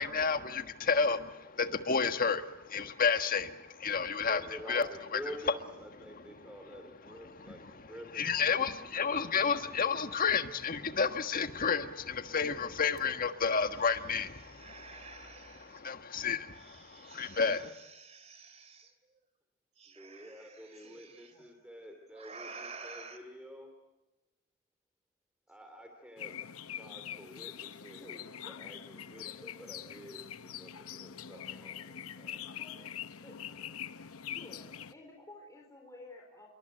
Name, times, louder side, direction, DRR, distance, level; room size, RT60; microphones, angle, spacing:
voice 1, 0.0-4.4 4.7-4.9 5.1-5.2 6.4-6.5 7.1-7.2 7.5-17.7, left 5 dB, 40° left, 8 dB, 1.5 m, -31 dB
voice 2, 4.2-8.2 19.9-23.7 25.5-26.4 26.8-28.1 28.4-32.5 32.7-32.9 33.6-33.7, equal, 5° right, 4 dB, 2.9 m, -49 dB
sound 1, 13.0-13.1 13.4-15.8 16.5-18.9 19.8-21.3 22.1-23.2, right 4 dB, 30° right, 2.8 m, -51 dB
sound 2, 26.2-34.9, left 9 dB, 80° left, 0.9 m, -44 dB
voice 3, 27.9-28.3 32.5-32.8 33.1-33.4 34.3-36.5, left 2 dB, 15° left, 0 dB, 4.4 m, -52 dB
27.5 x 23.0 x 9.1 m, 1.0 s
head